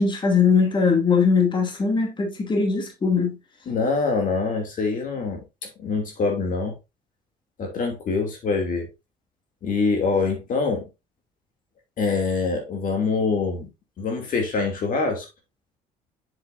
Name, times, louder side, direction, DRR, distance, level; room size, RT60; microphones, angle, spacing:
voice 1, 0.0-3.4, left 5 dB, 30° left, 2.6 m, -20 dB
voice 2, 3.7-6.8 7.6-8.9 9.6-10.9 12.0-13.7 14.0-15.3, left 4 dB, 55° left, 2.6 m, -25 dB
7.5 x 7.2 x 2.6 m
cardioid pair, 110°, 17 cm